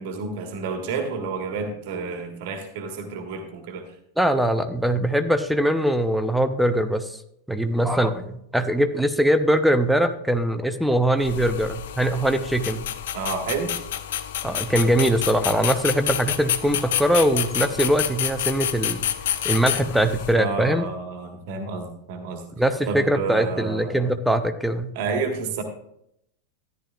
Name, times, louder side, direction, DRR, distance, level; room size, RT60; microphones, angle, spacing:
voice 1, 0.0-3.8 13.1-13.7 20.4-22.4 22.9-24.0 24.9-25.6, right 4 dB, 50° right, 5 dB, 1.5 m, -30 dB
voice 2, 4.2-7.2 7.5-12.9 14.4-19.0 19.4-20.9 22.6-24.9, right 1 dB, ahead, 8 dB, 0.8 m, -22 dB
sound 1, 11.2-20.4, left 11 dB, 55° left, 0.6 m, -29 dB
13.5 x 10.5 x 2.4 m, 0.75 s
figure-of-eight pair, 90°, 0 cm